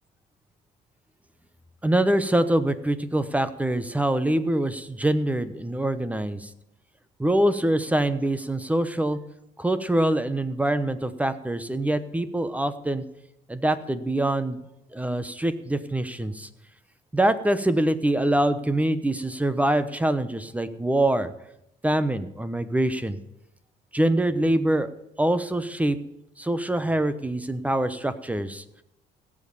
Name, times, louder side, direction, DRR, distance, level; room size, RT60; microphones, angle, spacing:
voice 1, 1.8-6.5 7.2-9.2 9.6-13.0 13.5-14.6 14.9-16.5 17.1-21.3 21.8-23.2 23.9-24.9 25.2-26.0 26.4-28.6, right 1 dB, 10° right, 13 dB, 0.9 m, -24 dB
17.0 x 7.6 x 6.9 m, 0.82 s
cardioid pair, 110°, 17 cm